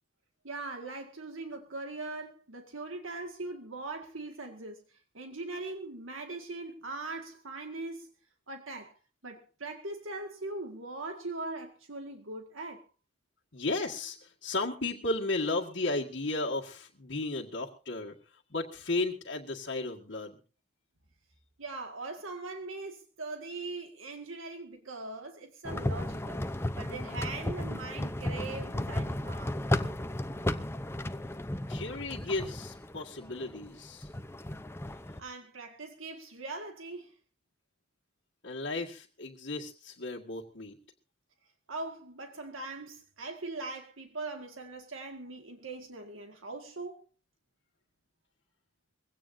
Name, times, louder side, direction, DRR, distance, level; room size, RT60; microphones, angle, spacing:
voice 1, 0.4-8.1 8.5-8.9 9.2-12.8 21.6-26.4 26.8-29.6 35.2-37.1 41.7-47.0, right 3 dB, 80° right, 2.0 m, -41 dB
voice 2, 13.5-20.4 31.7-34.1 38.4-40.8, left 2 dB, 60° left, 1.8 m, -34 dB
sound 1, 25.6-35.2, left 1 dB, 10° left, 0.7 m, -34 dB
22.5 x 17.0 x 2.7 m
head